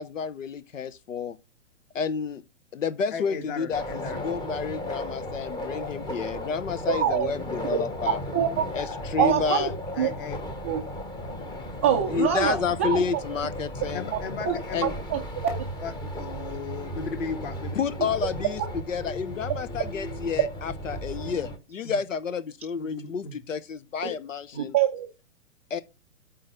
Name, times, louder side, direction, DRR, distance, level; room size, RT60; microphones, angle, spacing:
voice 1, 0.0-1.4 1.9-2.4 2.7-8.2 8.7-9.7 12.1-14.1 14.7-14.9 17.7-18.6 18.9-24.7 25.7-25.8, left 6 dB, 90° left, 0.8 m, -30 dB
voice 2, 3.1-4.3 9.9-10.4 11.9-12.0 13.9-14.9 15.8-18.1 21.8-22.0 22.8-23.4 24.5-24.7, left 5 dB, 45° left, 2.0 m, -36 dB
sound 1, 3.7-21.6, equal, 10° left, 0.8 m, -35 dB
voice 3, 7.0-7.3 7.7-7.8 8.3-8.6 9.2-9.7 10.0-10.1 10.6-10.8 11.8-13.0 14.5-14.6 15.1-15.5 24.6-25.1, right 9 dB, 10° right, 0.3 m, -24 dB
8.6 x 3.9 x 6.7 m
hypercardioid pair, 135°, 37 cm